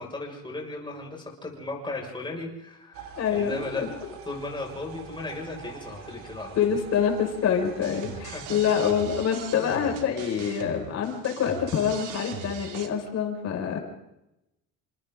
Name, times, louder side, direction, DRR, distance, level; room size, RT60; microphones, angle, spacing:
voice 1, 0.0-6.7 8.0-8.6, left 2 dB, 15° left, 0 dB, 6.2 m, -36 dB
sound 1, 2.9-9.3, right 7 dB, 80° right, 4.2 m, -45 dB
voice 2, 3.1-3.9 6.6-13.8, left 7 dB, 50° left, 1 dB, 6.2 m, -26 dB
sound 2, 7.8-12.9, right 8 dB, 65° right, 2.8 m, -40 dB
29.0 x 27.0 x 3.9 m, 0.90 s
cardioid pair, 165°, 34 cm